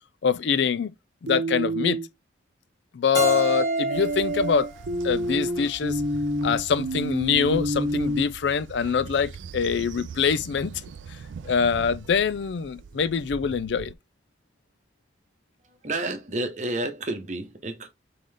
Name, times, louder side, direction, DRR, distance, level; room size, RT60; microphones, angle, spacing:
voice 1, 0.2-0.9 1.2-2.0 2.9-4.7 5.0-6.0 6.4-10.7 11.4-13.9, left 6 dB, 75° left, 0.4 m, -24 dB
sound 1, 1.3-2.1 3.2-8.2, right 1 dB, 70° right, 0.8 m, -27 dB
Keyboard (musical), 3.1-6.0, equal, 15° left, 1.1 m, -35 dB
Train, 3.9-13.9, right 6 dB, 85° right, 0.3 m, -42 dB
voice 2, 15.7-17.9, right 2 dB, 40° right, 0.9 m, -30 dB
3.8 x 3.8 x 3.4 m
head